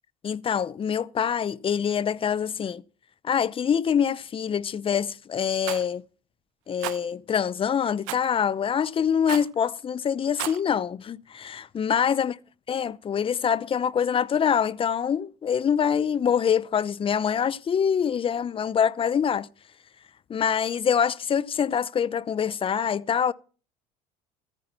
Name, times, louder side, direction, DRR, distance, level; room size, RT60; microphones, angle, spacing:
voice 1, 0.2-2.8 3.2-6.0 6.7-12.3 12.7-19.5 20.3-23.3, left 8 dB, 30° left, 0.7 m, -25 dB
Rattle, 5.6-5.9 6.8-7.0 8.1-8.3 9.3-9.5 10.2-10.6, right 20 dB, 85° right, 0.8 m, -33 dB
14.0 x 9.8 x 5.7 m
supercardioid pair, 100°, 18 cm